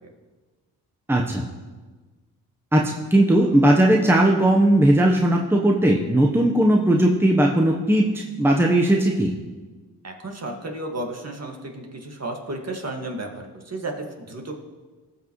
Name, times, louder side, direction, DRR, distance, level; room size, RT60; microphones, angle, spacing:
voice 1, 1.1-1.4 2.7-9.3, right 1 dB, 5° right, 0 dB, 1.0 m, -18 dB
voice 2, 10.0-14.5, right 2 dB, 35° right, 2 dB, 1.9 m, -33 dB
17.0 x 6.1 x 3.2 m, 1.3 s
supercardioid pair, 55°, 42 cm